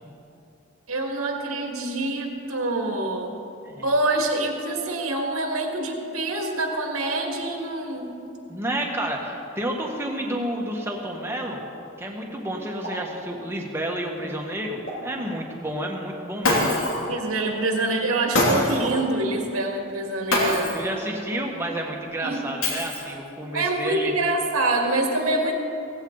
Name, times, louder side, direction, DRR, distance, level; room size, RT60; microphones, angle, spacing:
voice 1, 0.9-3.4 3.8-8.2 17.1-20.7 22.2-22.4 23.5-25.5, right 2 dB, 90° right, 1 dB, 2.1 m, -25 dB
voice 2, 8.5-11.6 12.0-16.8 20.7-24.1, right 1 dB, 10° right, 0 dB, 1.5 m, -30 dB
sound 1, 12.8-13.1 14.9-15.2 16.8-17.1 18.8-19.1, equal, 50° left, 3.7 m, -34 dB
Shatter, 16.4-17.1 18.3-18.9 20.3-20.9 22.6-23.3, left 1 dB, 75° left, 3.1 m, -23 dB
17.5 x 15.5 x 4.0 m, 2.8 s
head